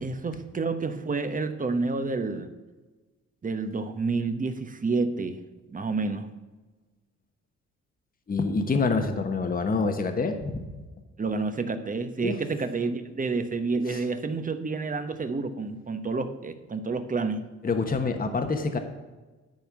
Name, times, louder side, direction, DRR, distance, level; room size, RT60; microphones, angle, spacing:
voice 1, 0.0-2.5 3.4-5.4 5.7-6.3 11.2-17.5, right 4 dB, 25° right, 9 dB, 1.0 m, -29 dB
voice 2, 8.3-10.6 12.2-12.4 13.9-14.0 17.6-18.8, left 4 dB, 30° left, 6 dB, 1.2 m, -26 dB
10.5 x 4.4 x 7.4 m, 1.2 s
cardioid pair, 90°, 30 cm